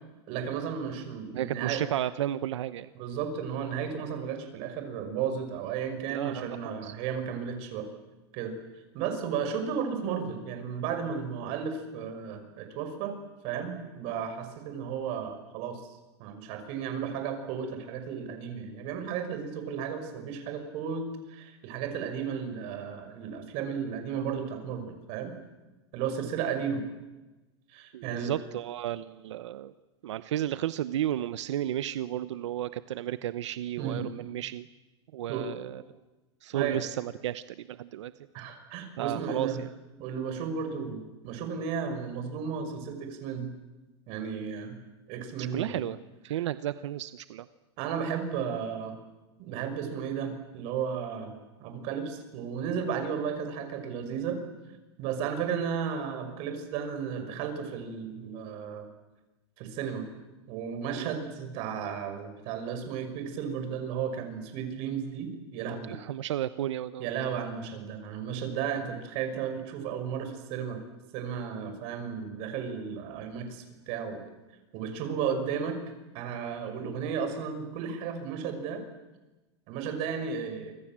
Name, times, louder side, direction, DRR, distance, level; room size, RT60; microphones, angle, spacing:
voice 1, 0.3-1.8 2.9-7.9 8.3-8.5 8.9-13.2 13.4-15.9 16.2-25.4 25.9-26.9 27.7-28.3 33.8-34.1 35.3-35.5 36.5-36.8 38.3-39.6 40.0-43.5 44.1-44.8 45.1-45.8 46.3-46.5 47.8-48.9 49.4-51.3 51.6-54.4 55.0-58.9 59.6-60.1 60.5-66.0 67.0-70.8 71.1-74.2 74.7-75.8 76.1-78.8 79.7-80.7, right 7 dB, 45° right, 7 dB, 5.9 m, -34 dB
voice 2, 1.3-2.9 6.1-6.6 6.8-6.9 27.9-29.7 30.0-34.6 35.1-35.8 36.4-38.1 39.0-39.7 45.4-46.0 46.2-47.5 60.9-61.1 66.0-67.1, right 12 dB, 85° right, 13 dB, 0.9 m, -33 dB
29.0 x 25.5 x 7.6 m, 1.1 s
supercardioid pair, 160°, 15 cm